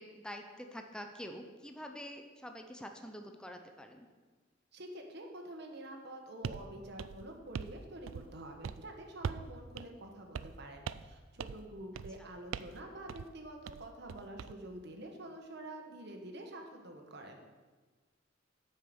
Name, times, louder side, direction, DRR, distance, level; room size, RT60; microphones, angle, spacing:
voice 1, 0.0-4.1 12.2-12.3, equal, 5° left, 4 dB, 0.6 m, -46 dB
voice 2, 4.7-17.5, right 1 dB, 55° right, 3 dB, 1.3 m, -47 dB
sound 1, 6.4-6.7 7.0-7.8 8.1-8.4 8.6-8.8 9.2-9.5 9.8-9.9 10.3-10.6 10.9-11.1 11.4-11.7 12.0-12.2 12.5-12.8 13.1-13.3 13.7-14.5, right 7 dB, 75° right, 0.3 m, -41 dB
8.4 x 5.7 x 6.9 m, 1.3 s
head